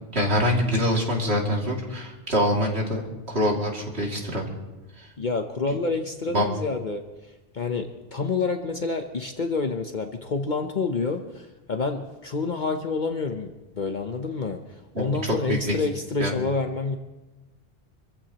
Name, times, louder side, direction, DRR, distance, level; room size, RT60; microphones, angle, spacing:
voice 1, 0.1-4.5 5.0-5.1 6.3-6.4 14.9-15.7 16.2-16.3, equal, 90° right, -1 dB, 2.9 m, -25 dB
voice 2, 5.2-7.0 7.5-13.5 13.7-14.6 15.0-17.0, left 4 dB, 50° left, 5 dB, 1.0 m, -28 dB
26.5 x 14.5 x 3.0 m, 1.1 s
omnidirectional pair, 1.1 m